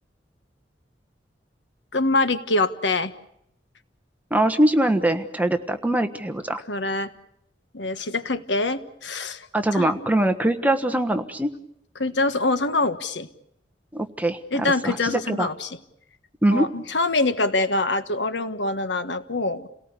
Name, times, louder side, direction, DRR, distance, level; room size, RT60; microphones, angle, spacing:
voice 1, 1.9-3.1 6.7-7.1 7.7-9.5 9.7-10.1 12.0-13.3 14.5-15.8 16.5-19.7, left 2 dB, 85° left, 10 dB, 1.5 m, -24 dB
voice 2, 4.3-6.6 9.5-11.5 13.9-15.5 16.4-16.7, right 1 dB, 10° right, 7 dB, 1.3 m, -22 dB
29.5 x 18.0 x 8.3 m, 0.77 s
head